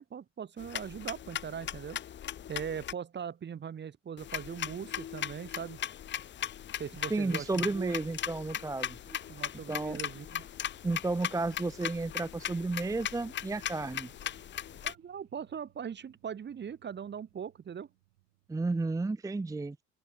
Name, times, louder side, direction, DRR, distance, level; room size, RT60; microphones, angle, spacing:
voice 1, 0.0-2.0 2.5-5.8 6.8-7.9 9.1-10.5 14.8-17.9, right 7 dB, 30° right, 1.1 m, -40 dB
sound 1, 0.6-2.9 4.2-14.9, left 10 dB, 30° left, 0.7 m, -38 dB
sound 2, 7.1-14.4, left 8 dB, 80° left, 6.2 m, -65 dB
voice 2, 7.1-9.0 9.7-10.0 10.8-14.1 18.5-19.8, right 3 dB, 10° right, 0.7 m, -32 dB
sound 3, 13.0-19.2, right 22 dB, 70° right, 5.7 m, -66 dB
open air
figure-of-eight pair, 55°, 37 cm